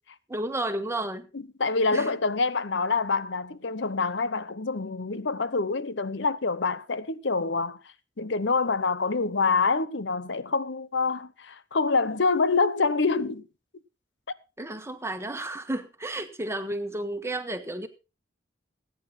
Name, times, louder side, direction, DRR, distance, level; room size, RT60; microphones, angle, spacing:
voice 1, 0.3-1.3 1.9-2.2 14.6-17.9, right 1 dB, 15° right, 1.5 m, -32 dB
voice 2, 1.6-7.8 8.2-13.4, left 4 dB, 70° left, 0.9 m, -26 dB
18.0 x 9.5 x 4.2 m
head